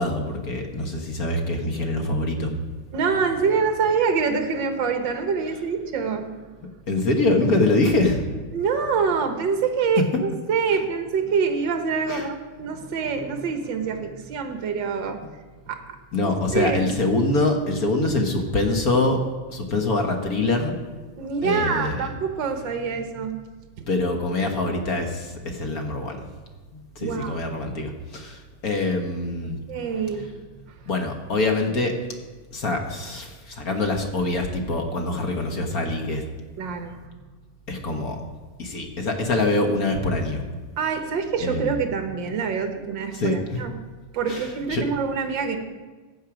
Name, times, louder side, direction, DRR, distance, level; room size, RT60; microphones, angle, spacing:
voice 1, 0.0-2.5 6.9-8.2 12.1-12.3 16.1-19.2 19.5-20.7 21.4-22.0 23.9-26.3 26.7-29.6 30.9-32.0 32.5-36.2 37.7-38.2 38.6-40.4 41.4-41.7 43.1-43.6 44.3-44.8, left 2 dB, 45° left, 3 dB, 1.3 m, -24 dB
voice 2, 2.9-6.3 8.5-15.2 15.7-17.0 21.2-23.4 23.8-23.9 27.0-27.4 29.4-30.8 36.6-37.1 40.8-43.7 44.1-45.6, right 5 dB, 55° right, 6 dB, 1.3 m, -26 dB
15.0 x 9.3 x 5.1 m, 1.3 s
omnidirectional pair, 3.3 m